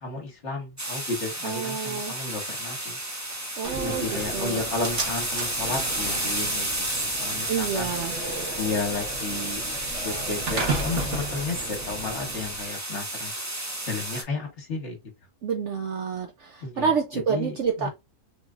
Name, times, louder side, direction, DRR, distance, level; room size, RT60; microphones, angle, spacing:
voice 1, 0.0-3.0 3.8-7.9 8.6-9.6 10.0-13.3 13.8-15.0 16.6-17.9, left 3 dB, 50° left, 1.3 m, -33 dB
sound 1, 0.8-14.2, right 1 dB, 15° right, 0.6 m, -32 dB
voice 2, 1.4-2.1 3.6-4.7 7.5-8.1 15.4-17.9, right 6 dB, 70° right, 0.7 m, -28 dB
Slam, 3.6-12.6, right 2 dB, 50° right, 1.3 m, -34 dB
3.7 x 3.1 x 2.4 m
omnidirectional pair, 1.6 m